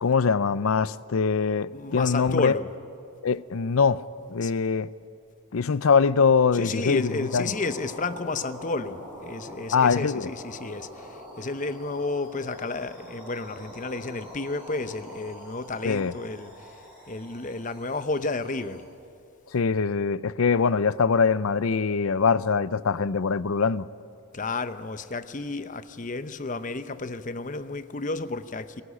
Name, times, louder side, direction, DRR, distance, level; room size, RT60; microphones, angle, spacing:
voice 1, 0.0-2.6 3.2-4.0 4.3-4.9 5.5-7.5 9.7-10.3 15.8-16.1 19.5-23.9, left 5 dB, 70° left, 0.5 m, -23 dB
voice 2, 1.7-2.7 4.4-4.5 6.5-16.7 17.1-18.8 24.3-28.8, left 3 dB, 35° left, 0.8 m, -32 dB
sound 1, 6.8-18.8, equal, 5° right, 6.8 m, -44 dB
23.5 x 16.5 x 9.9 m
head